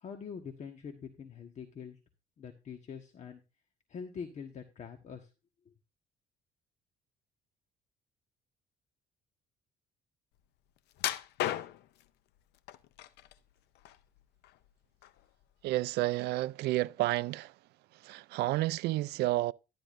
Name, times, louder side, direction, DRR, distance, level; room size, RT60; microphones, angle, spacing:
voice 1, 0.0-2.0 2.4-3.4 3.9-5.3, left 6 dB, 45° left, 1.4 m, -44 dB
sound 1, 11.0-12.0 12.7-13.3 13.7-14.7 15.0-15.2 15.7-15.8, left 13 dB, 80° left, 0.6 m, -35 dB
voice 2, 15.6-17.5 18.0-19.5, right 17 dB, 75° right, 0.4 m, -30 dB
12.0 x 10.0 x 2.6 m
cardioid pair, 110°, 17 cm